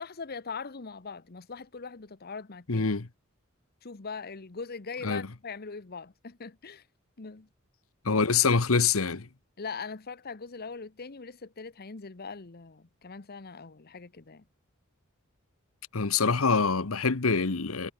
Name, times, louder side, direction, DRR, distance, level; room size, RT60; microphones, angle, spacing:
voice 1, 0.0-2.9 3.8-6.9 7.2-7.5 9.6-14.4, left 5 dB, 50° left, 1.0 m, -41 dB
voice 2, 2.7-3.1 5.0-5.3 8.0-9.3 15.9-17.9, left 5 dB, 85° left, 1.2 m, -25 dB
head